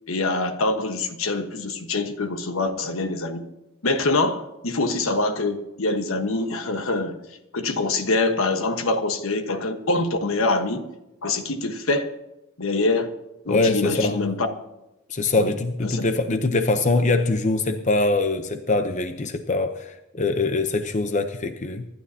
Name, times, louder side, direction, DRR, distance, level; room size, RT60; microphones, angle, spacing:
voice 1, 0.1-3.5 3.8-7.2 7.5-10.9 11.2-12.1 12.6-13.1 13.5-14.5 15.3-15.5 15.8-16.0, left 2 dB, 70° left, 1.3 m, -24 dB
voice 2, 13.5-14.2 15.1-21.9, left 3 dB, 35° left, 0.7 m, -23 dB
25.0 x 12.0 x 2.8 m
head